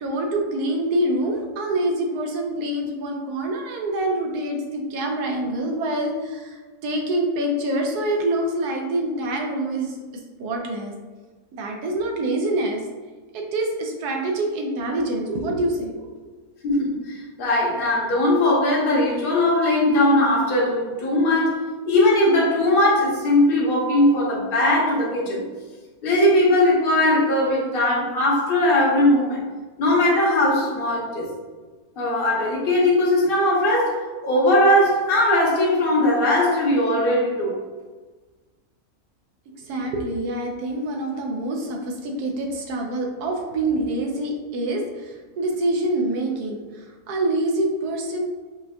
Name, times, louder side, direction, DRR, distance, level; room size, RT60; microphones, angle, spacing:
voice 1, 0.0-10.0 10.4-10.9 11.5-12.8 13.3-16.1 39.6-48.2, right 1 dB, 85° right, 1 dB, 1.2 m, -26 dB
voice 2, 16.6-21.6 21.9-25.4 26.0-29.4 29.8-31.3 32.0-37.6, left 1 dB, 45° left, -4 dB, 1.0 m, -19 dB
5.3 x 2.7 x 2.2 m, 1.3 s
omnidirectional pair, 1.6 m